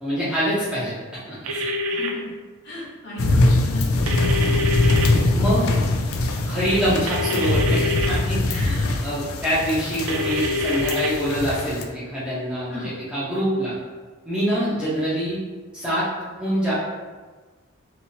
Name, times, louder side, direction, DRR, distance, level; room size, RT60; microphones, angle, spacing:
voice 1, 0.0-0.9 1.3-1.7 5.3-5.7 6.5-13.7 14.2-15.4 15.7-16.1 16.4-16.7, equal, 5° right, -11 dB, 0.8 m, -25 dB
sound 1, 1.4-2.1 4.1-5.1 7.1-8.1 10.1-11.1, left 2 dB, 90° right, 0.4 m, -25 dB
voice 2, 1.9-2.3 2.6-4.5 12.7-13.0, left 2 dB, 50° left, -8 dB, 1.2 m, -36 dB
sound 2, 3.2-11.8, left 2 dB, 85° left, 0.4 m, -22 dB
2.9 x 2.7 x 2.8 m, 1.3 s
head